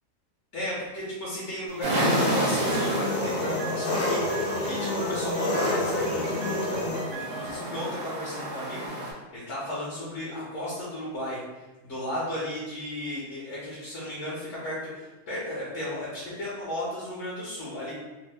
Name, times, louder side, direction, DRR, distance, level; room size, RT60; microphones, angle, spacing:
voice 1, 0.5-11.4 11.8-17.9, left 1 dB, 60° left, -8 dB, 1.1 m, -35 dB
Engine, 1.8-7.0, left 2 dB, 80° left, 1.1 m, -28 dB
sound 1, 1.8-9.1, right 1 dB, 50° right, 0.5 m, -32 dB
Piano, 1.8-8.7, right 2 dB, 80° right, 1.0 m, -39 dB
3.0 x 2.1 x 3.3 m, 1.1 s
omnidirectional pair, 1.4 m